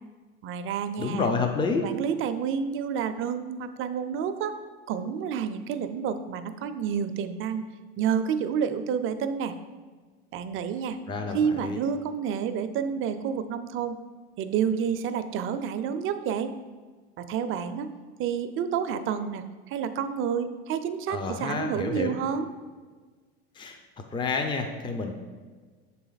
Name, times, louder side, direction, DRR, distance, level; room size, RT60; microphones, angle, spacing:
voice 1, 0.4-1.3 1.8-4.6 4.9-7.6 8.0-9.5 10.3-11.0 11.3-14.0 14.4-16.5 17.2-17.9 18.2-22.5, right 7 dB, 40° right, 11 dB, 0.5 m, -29 dB
voice 2, 1.0-1.9 11.1-11.8 21.1-22.2 23.6-23.8 24.1-25.1, left 4 dB, 15° left, 4 dB, 0.5 m, -29 dB
6.5 x 4.1 x 3.9 m, 1.4 s
supercardioid pair, 105°, 31 cm